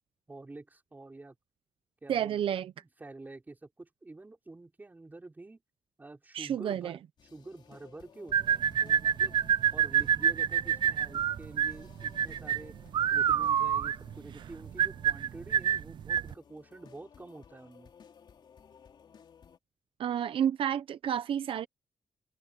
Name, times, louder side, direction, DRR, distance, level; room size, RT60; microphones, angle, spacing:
voice 1, 0.3-1.4 2.0-2.4 2.8-5.6 6.0-7.0 7.3-9.4 9.7-12.8 13.1-17.9, right 2 dB, 20° right, 5.8 m, -48 dB
voice 2, 2.1-2.7 6.3-7.0 20.0-21.7, right 9 dB, 85° right, 0.7 m, -30 dB
sound 1, 7.2-19.6, left 7 dB, 60° left, 3.2 m, -57 dB
sound 2, 8.3-16.3, right 9 dB, 60° right, 0.3 m, -27 dB
wide cardioid pair, 135°, 9 cm